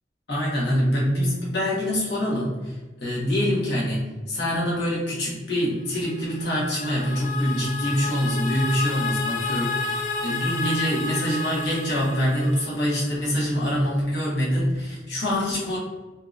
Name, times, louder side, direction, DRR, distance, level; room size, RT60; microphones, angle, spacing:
voice 1, 0.3-15.8, equal, 65° left, -6 dB, 1.2 m, -25 dB
sound 1, 6.0-13.2, left 4 dB, 45° left, 0.3 m, -31 dB
3.7 x 2.8 x 2.5 m, 1.2 s
head